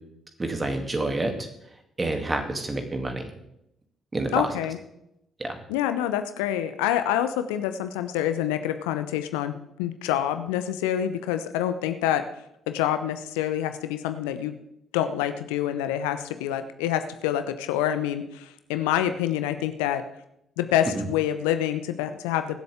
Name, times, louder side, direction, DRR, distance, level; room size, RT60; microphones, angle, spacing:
voice 1, 0.4-1.3 2.0-3.3 4.1-4.5 5.4-5.6 20.9-21.0, right 2 dB, 25° right, 4 dB, 2.7 m, -28 dB
voice 2, 4.3-4.8 5.7-12.2 12.7-14.5 14.9-20.0 20.6-22.6, left 11 dB, 75° left, 9 dB, 0.8 m, -27 dB
23.0 x 7.9 x 3.6 m, 0.82 s
figure-of-eight pair, 45°, 0 cm